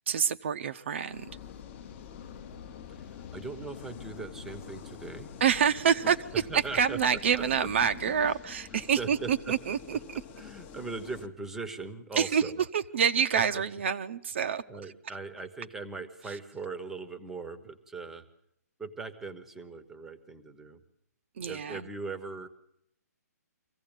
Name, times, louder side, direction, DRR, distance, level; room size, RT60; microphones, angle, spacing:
voice 1, 0.1-1.3 5.4-6.2 6.7-10.2 12.2-14.6 21.4-21.8, right 7 dB, 45° right, 0.8 m, -27 dB
sound 1, 1.1-8.4, left 7 dB, 50° left, 0.9 m, -48 dB
sound 2, 1.3-11.3, left 8 dB, 20° left, 1.0 m, -49 dB
voice 2, 2.9-5.3 6.0-7.2 7.6-7.7 8.1-8.3 8.7-9.5 10.4-12.6 13.3-13.6 14.7-18.2 18.8-20.8 21.5-22.5, right 4 dB, 5° right, 1.1 m, -40 dB
24.5 x 16.0 x 8.9 m
hypercardioid pair, 165°, 9 cm